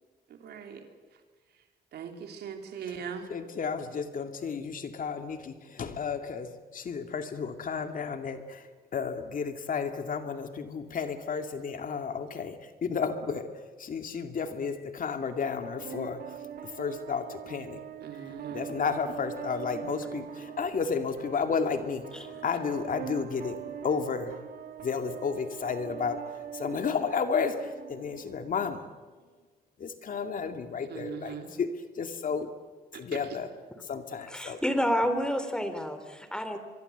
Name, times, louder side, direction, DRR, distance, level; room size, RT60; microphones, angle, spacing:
voice 1, 0.3-0.9 1.9-3.3 17.5-17.7 18.0-18.7 30.9-31.5 32.9-33.4, right 7 dB, 80° right, 4 dB, 3.5 m, -40 dB
voice 2, 3.3-16.2 16.6-17.8 18.2-24.4 24.8-26.2 26.5-28.9 29.8-31.7 32.0-32.5 33.0-33.5 33.8-34.6, left 5 dB, 55° left, 7 dB, 2.4 m, -32 dB
sound 1, 15.6-28.6, right 9 dB, 65° right, 1.2 m, -42 dB
voice 3, 34.3-36.6, equal, 5° left, 9 dB, 3.6 m, -29 dB
24.5 x 23.5 x 8.1 m, 1.4 s
cardioid pair, 100°, 17 cm